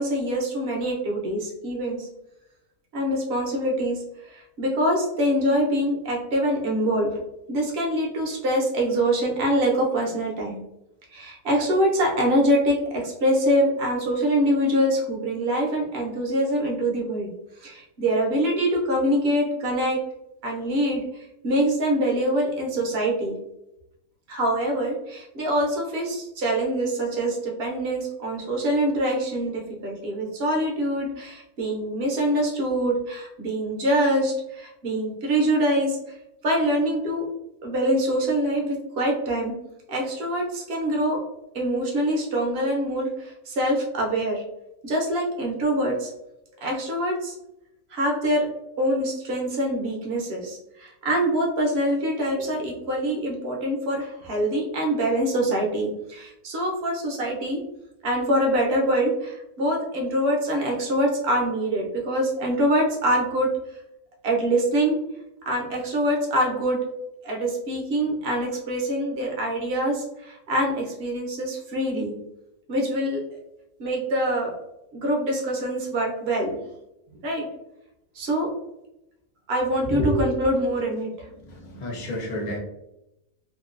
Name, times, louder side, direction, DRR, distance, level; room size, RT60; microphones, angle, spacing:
voice 1, 0.0-2.1 2.9-7.2 7.5-10.6 11.1-17.3 17.6-20.0 20.4-23.4 24.3-36.0 36.4-37.3 37.6-39.5 39.9-41.2 41.5-44.4 44.8-46.1 46.6-47.4 47.9-48.5 48.8-57.6 58.0-63.5 64.2-65.0 65.5-66.8 67.2-72.1 72.7-73.4 73.8-74.6 74.9-76.6 77.2-77.5 78.1-78.5 79.5-81.3, right 1 dB, 55° right, -1 dB, 0.8 m, -24 dB
voice 2, 79.9-80.3 81.3-82.6, equal, 65° left, -1 dB, 0.4 m, -28 dB
2.9 x 2.3 x 2.4 m, 0.87 s
omnidirectional pair, 1.5 m